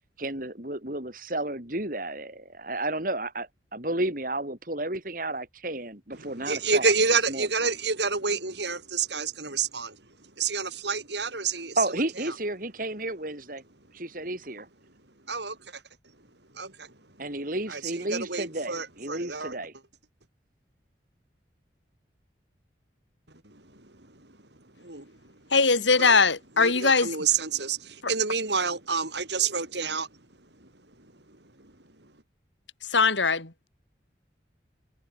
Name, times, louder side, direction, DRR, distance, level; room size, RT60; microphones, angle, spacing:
voice 1, 0.2-6.9 7.3-7.5 11.8-13.6 13.9-14.7 17.2-19.7, right 1 dB, 45° right, 4.2 m, -32 dB
voice 2, 6.1-10.0 10.4-12.4 15.3-15.8 16.5-16.9 17.7-19.6 23.4-23.6 24.8-25.1 25.9-26.2 26.5-30.1 31.6-31.7, right 5 dB, 70° right, 5.0 m, -29 dB
voice 3, 25.5-27.1 28.0-28.1 32.9-33.7, left 4 dB, 80° left, 3.6 m, -21 dB
head